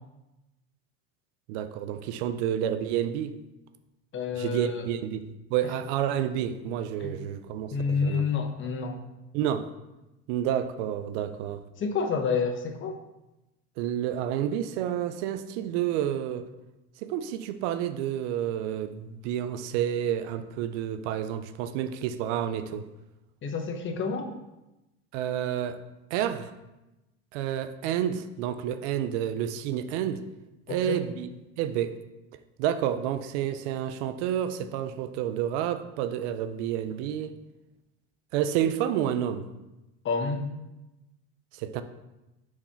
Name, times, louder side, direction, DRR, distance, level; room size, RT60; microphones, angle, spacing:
voice 1, 1.5-3.3 4.4-8.3 9.3-9.7 10.3-11.6 13.8-16.5 17.0-22.8 25.1-25.8 26.1-26.5 27.3-30.2 30.7-31.3 31.6-31.9 32.6-37.4 38.3-39.5 41.5-41.8, right 10 dB, 70° right, 11 dB, 0.6 m, -29 dB
voice 2, 4.1-4.8 7.0-7.2 7.7-9.1 11.8-13.0 23.4-24.3 30.7-31.0 40.0-40.4, left 5 dB, 35° left, 5 dB, 0.9 m, -29 dB
4.8 x 4.3 x 5.6 m, 0.99 s
supercardioid pair, 110°, 35 cm